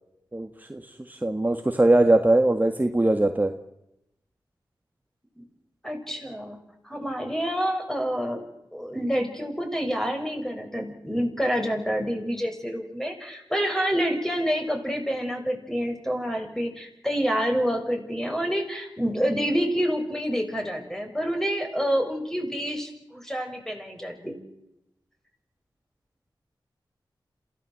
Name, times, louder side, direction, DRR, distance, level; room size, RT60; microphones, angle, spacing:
voice 1, 0.3-3.5, right 2 dB, 20° right, 6 dB, 1.8 m, -21 dB
voice 2, 5.8-6.6 6.8-8.4 8.7-24.3, equal, 5° left, 3 dB, 6.5 m, -28 dB
27.0 x 16.5 x 7.8 m, 0.87 s
cardioid pair, 45°, 9 cm